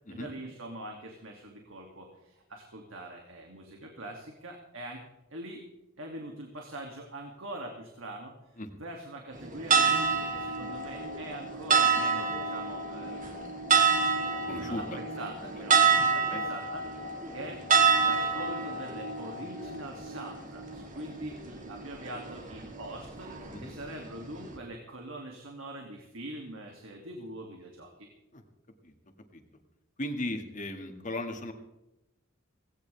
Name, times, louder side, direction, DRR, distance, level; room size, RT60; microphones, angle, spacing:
voice 1, 0.1-5.0 5.3-5.6 6.0-13.5 14.5-17.6 18.0-23.3 23.6-28.1, right 1 dB, 75° right, 1 dB, 2.6 m, -43 dB
sound 1, 9.3-24.6, right 5 dB, 40° right, 2.2 m, -28 dB
voice 2, 14.5-15.0 16.3-16.4 23.5-23.7 28.3-28.4 28.8-28.9 29.3-29.4 30.0-31.5, left 1 dB, 40° left, 4 dB, 2.1 m, -36 dB
18.0 x 17.5 x 3.5 m, 0.92 s
head